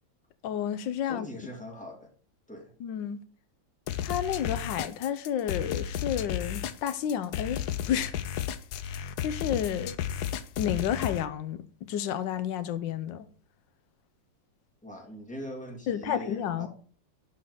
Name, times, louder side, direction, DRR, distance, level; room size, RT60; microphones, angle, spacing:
voice 1, 0.4-1.3 2.8-3.2 4.0-7.6 7.9-8.2 8.9-9.9 10.6-13.3 15.9-16.7, left 9 dB, 90° left, 1.4 m, -31 dB
voice 2, 1.1-2.1 2.5-2.7 14.8-16.7, left 1 dB, 5° left, 2.3 m, -41 dB
sound 1, 3.9-11.2, left 9 dB, 70° left, 1.1 m, -33 dB
11.5 x 4.2 x 4.9 m
omnidirectional pair, 2.0 m